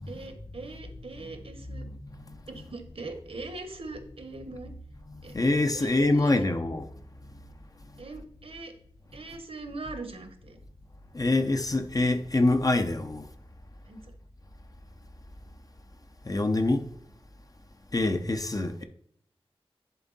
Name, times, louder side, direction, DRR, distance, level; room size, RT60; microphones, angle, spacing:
voice 1, 0.1-1.8 2.5-4.7 5.2-5.3 5.7-6.4 8.0-8.7 9.1-10.6 13.8-14.1 18.8-18.9, right 3 dB, 65° right, 1.2 m, -41 dB
voice 2, 1.8-2.4 5.3-6.8 11.1-13.3 16.2-16.9 17.9-18.8, left 2 dB, 35° left, 0.7 m, -25 dB
10.5 x 3.6 x 4.0 m
wide cardioid pair, 55°, 10 cm